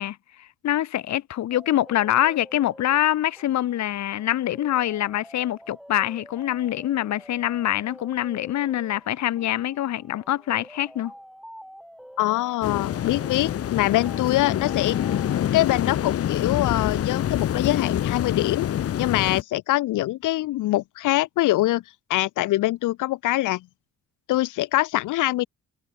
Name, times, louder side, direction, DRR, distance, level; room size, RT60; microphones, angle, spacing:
voice 1, 0.0-11.1, left 12 dB, 65° left, 1.1 m, -25 dB
sound 1, 1.5-15.5, equal, ahead, 7.7 m, -47 dB
voice 2, 12.2-15.0 15.5-18.7 19.0-21.8 22.1-23.6 24.3-25.5, left 16 dB, 90° left, 1.9 m, -24 dB
sound 2, 12.6-19.4, left 10 dB, 50° left, 0.8 m, -26 dB
cardioid pair, 90°, 30 cm